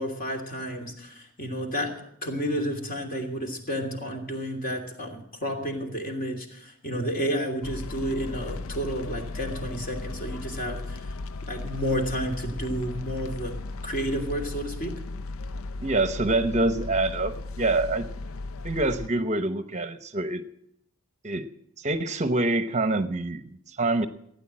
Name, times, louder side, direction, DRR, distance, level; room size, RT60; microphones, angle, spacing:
voice 1, 0.0-11.1 11.5-13.6 13.8-14.9, equal, 40° left, 3 dB, 2.9 m, -31 dB
sound 1, 7.6-19.1, left 3 dB, 70° left, 0.6 m, -36 dB
voice 2, 15.8-18.1 18.6-20.4 21.2-21.5 21.8-24.1, right 2 dB, 30° right, 10 dB, 0.8 m, -26 dB
16.5 x 9.5 x 7.5 m, 0.73 s
head